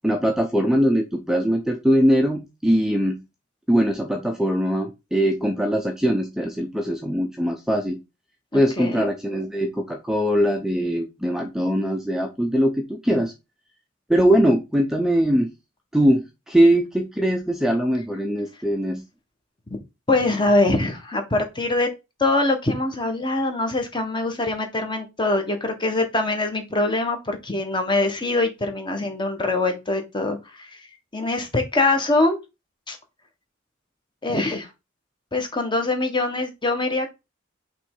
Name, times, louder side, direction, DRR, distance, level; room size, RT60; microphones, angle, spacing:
voice 1, 0.0-3.2 3.7-8.0 8.5-13.3 14.1-15.5 15.9-19.0, equal, 5° right, 4 dB, 0.7 m, -21 dB
voice 2, 8.5-9.1 20.1-21.9 22.2-30.8 31.1-32.4 32.9-33.0 34.2-34.7 35.3-37.1, left 2 dB, 25° left, 5 dB, 1.5 m, -23 dB
5.7 x 3.4 x 5.5 m, 0.24 s
head